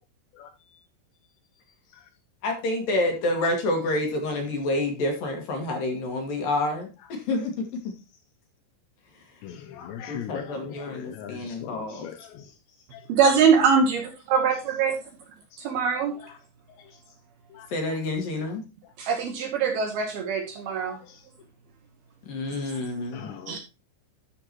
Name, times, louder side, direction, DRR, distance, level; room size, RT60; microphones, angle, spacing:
voice 1, 2.4-7.7 10.1-12.1 17.7-18.6 22.3-23.3, left 2 dB, 55° left, 2.9 m, -28 dB
voice 2, 9.4-12.5 12.9-13.0 16.8-16.9 17.5-17.7 20.9-21.2 23.1-23.6, left 9 dB, 80° left, 2.7 m, -40 dB
voice 3, 13.2-14.0 14.3-14.9 15.6-16.2 19.0-21.0 23.5-23.6, right 6 dB, 70° right, 2.6 m, -22 dB
13.0 x 6.8 x 3.0 m
omnidirectional pair, 5.6 m